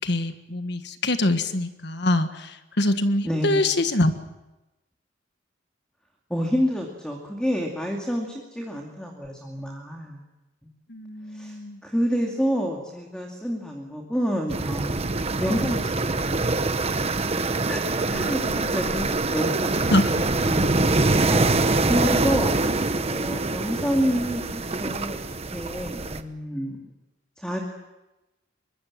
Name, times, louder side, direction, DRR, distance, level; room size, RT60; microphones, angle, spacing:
voice 1, 0.0-2.5 2.8-4.1 10.9-11.8 18.1-18.6 19.9-20.2, left 1 dB, 60° left, 8 dB, 1.6 m, -24 dB
voice 2, 3.2-3.7 6.3-10.2 10.6-10.7 11.3-11.6 11.8-15.1 15.4-15.9 17.7-17.8 18.1-18.4 18.7-19.1 19.3-19.8 20.5-20.8 21.3-21.5 21.9-22.6 23.0-26.9 27.4-27.7, equal, 5° left, 1 dB, 2.4 m, -28 dB
sound 1, 14.5-26.2, right 2 dB, 35° right, 1.0 m, -24 dB
24.0 x 22.0 x 7.5 m, 1.0 s
head